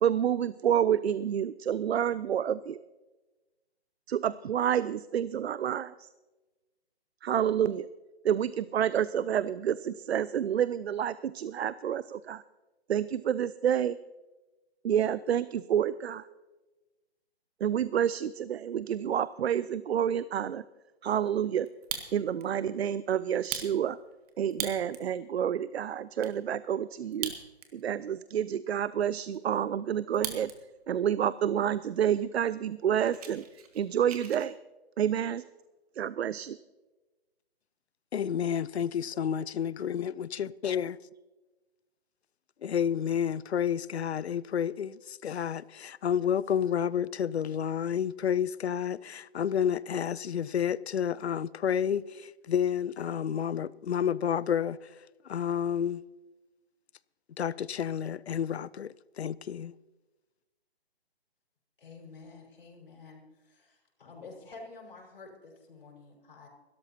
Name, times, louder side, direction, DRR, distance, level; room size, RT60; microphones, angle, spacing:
voice 1, 0.0-2.8 4.1-5.9 7.2-7.9 8.2-12.4 12.9-14.0 14.8-16.2 17.6-20.6 21.0-21.7 22.1-24.0 24.4-27.3 27.7-30.5 30.9-33.4 33.8-34.5 35.0-35.4 36.0-36.6, right 9 dB, 75° right, 0.5 m, -29 dB
Fire, 21.7-22.5 22.9-23.0 23.4-25.1 25.6-25.7 25.9-26.3 27.0-27.9 28.2-28.3 28.8-30.6 30.9-31.3 31.9-32.0 32.3-32.4 32.7-34.5, right 7 dB, 35° right, 1.6 m, -39 dB
voice 2, 38.1-40.9 42.6-54.9 55.2-56.0 57.4-59.7, left 8 dB, 80° left, 0.5 m, -30 dB
voice 3, 61.8-63.2 63.4-66.5, left 3 dB, 60° left, 5.3 m, -49 dB
22.5 x 13.0 x 2.9 m
hypercardioid pair, 150°, 32 cm